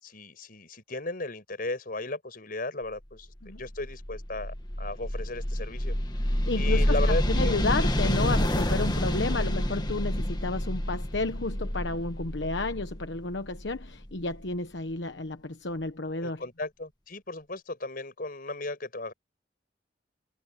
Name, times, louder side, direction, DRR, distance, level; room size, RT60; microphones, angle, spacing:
voice 1, 0.0-6.0 6.6-7.6 16.2-19.1, left 2 dB, 50° left, 5.3 m, -35 dB
sound 1, 3.6-14.3, equal, 25° left, 1.9 m, -28 dB
voice 2, 6.5-16.4, left 3 dB, 75° left, 1.2 m, -32 dB
head